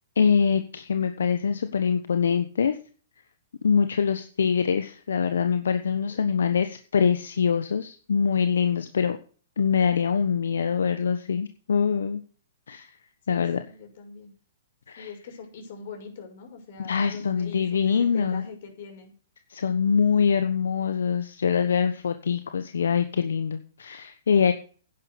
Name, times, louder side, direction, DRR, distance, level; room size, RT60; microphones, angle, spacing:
voice 1, 0.2-2.8 3.6-9.2 9.6-12.2 12.7-12.9 13.3-13.6 14.9-15.1 16.8-18.4 19.5-24.5, left 6 dB, 85° left, 9 dB, 1.1 m, -24 dB
voice 2, 13.3-14.3 15.0-19.1, left 4 dB, 55° left, 3 dB, 6.3 m, -42 dB
10.5 x 10.5 x 6.6 m, 0.42 s
hypercardioid pair, 140°, 0 cm